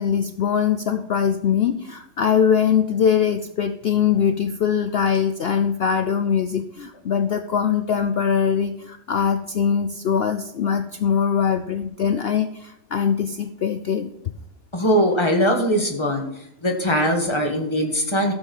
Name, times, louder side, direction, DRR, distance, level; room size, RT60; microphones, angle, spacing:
voice 1, 0.0-14.1 18.2-18.3, left 7 dB, 60° left, 9 dB, 0.7 m, -22 dB
voice 2, 14.7-16.2 16.6-18.3, equal, 20° left, 2 dB, 1.6 m, -21 dB
13.5 x 7.3 x 5.4 m, 0.81 s
omnidirectional pair, 1.5 m